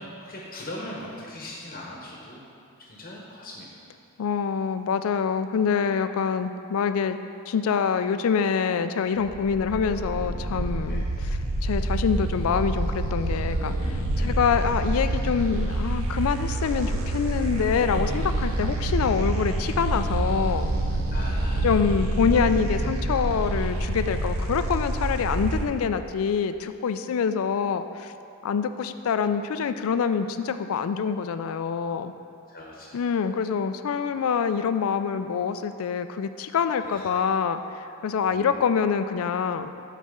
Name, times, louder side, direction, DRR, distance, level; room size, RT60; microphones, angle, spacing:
voice 1, 0.0-2.5 2.8-3.7 5.9-6.0 10.8-11.0 14.2-14.4 21.1-21.7 32.5-33.0 36.8-37.1 38.3-38.5, left 1 dB, 40° left, -3 dB, 0.9 m, -40 dB
voice 2, 4.2-7.2 7.5-20.7 21.6-28.1 28.4-32.1 32.9-39.7, left 6 dB, 70° left, 10 dB, 0.4 m, -26 dB
sound 1, 9.2-25.7, right 1 dB, 70° right, 0.7 m, -27 dB
11.5 x 4.2 x 3.7 m, 2.6 s
head